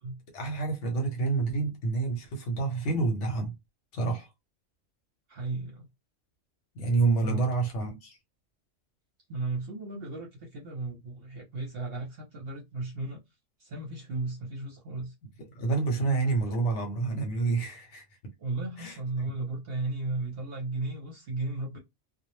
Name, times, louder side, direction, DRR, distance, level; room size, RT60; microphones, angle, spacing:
voice 1, 0.3-3.5 3.9-4.3 6.7-8.2 15.4-18.1 18.8-19.0, right 4 dB, 70° left, 1.0 m, -28 dB
voice 2, 5.3-5.9 7.2-7.4 9.3-13.2 13.6-15.1 18.4-21.8, right 3 dB, 55° right, 0.8 m, -35 dB
2.2 x 2.0 x 3.0 m
omnidirectional pair, 1.3 m